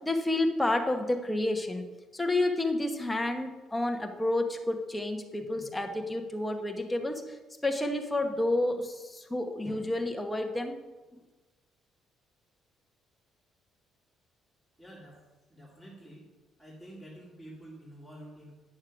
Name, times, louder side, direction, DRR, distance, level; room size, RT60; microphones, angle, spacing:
voice 1, 0.0-1.8 2.1-10.8, left 2 dB, 10° left, 4 dB, 1.1 m, -30 dB
voice 2, 14.8-15.2 15.5-16.3 16.6-18.5, right 1 dB, 10° right, -7 dB, 2.5 m, -48 dB
9.6 x 6.6 x 5.9 m, 1.2 s
cardioid pair, 130°, 0 cm